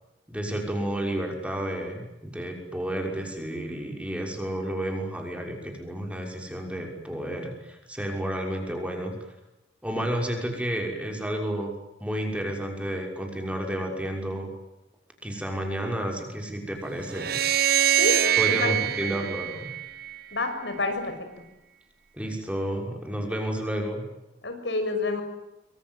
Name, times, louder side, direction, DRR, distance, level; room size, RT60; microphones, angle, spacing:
voice 1, 0.3-9.1 9.8-11.7 12.0-14.5 15.2-17.4 18.4-19.7 22.1-24.0, right 1 dB, 5° right, 2 dB, 6.0 m, -31 dB
sound 1, 17.1-20.4, right 11 dB, 55° right, 1.2 m, -24 dB
voice 2, 18.0-18.7 19.0-19.3 20.3-21.1 24.4-25.2, left 3 dB, 75° left, 7 dB, 6.5 m, -29 dB
25.5 x 25.0 x 9.5 m, 0.92 s
head